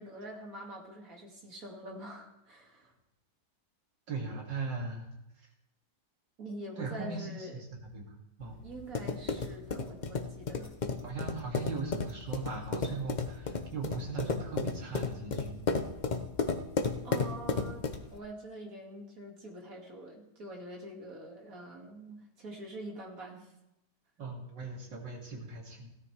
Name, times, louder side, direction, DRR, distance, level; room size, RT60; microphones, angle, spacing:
voice 1, 0.0-2.9 6.4-7.6 8.6-10.7 17.0-23.5, right 1 dB, 50° right, 0 dB, 2.6 m, -45 dB
voice 2, 4.1-5.1 6.8-8.6 11.0-15.6 24.2-25.9, right 3 dB, 85° right, -1 dB, 3.0 m, -39 dB
sound 1, 8.4-18.2, left 4 dB, 50° left, 0.5 m, -34 dB
17.0 x 13.0 x 3.3 m, 0.88 s
omnidirectional pair, 1.9 m